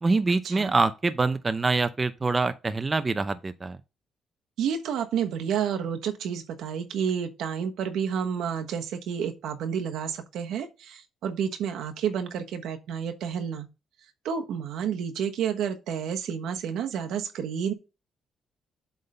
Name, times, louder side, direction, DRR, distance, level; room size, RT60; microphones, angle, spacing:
voice 1, 0.0-3.8, right 3 dB, 25° right, 0.6 m, -25 dB
voice 2, 4.6-13.7 14.2-17.7, right 7 dB, 80° right, 1.2 m, -30 dB
8.0 x 3.7 x 5.4 m
cardioid pair, 90°, 0 cm